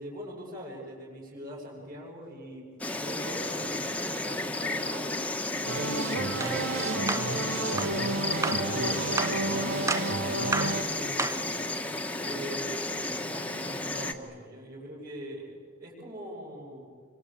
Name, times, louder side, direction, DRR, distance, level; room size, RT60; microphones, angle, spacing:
voice 1, 0.0-2.7 3.0-9.8 10.1-11.6 12.2-16.9, equal, 45° right, -8 dB, 6.7 m, -42 dB
Insect, 2.8-14.1, left 2 dB, 5° left, 1.4 m, -32 dB
sound 1, 5.7-10.8, right 3 dB, 85° right, 1.7 m, -31 dB
sound 2, 6.4-6.6 7.1-7.3 7.8-7.9 8.4-8.7 9.2-9.4 9.9-10.1 10.5-10.8 11.2-11.5, right 3 dB, 15° right, 0.6 m, -31 dB
27.5 x 25.0 x 8.7 m, 2.1 s
head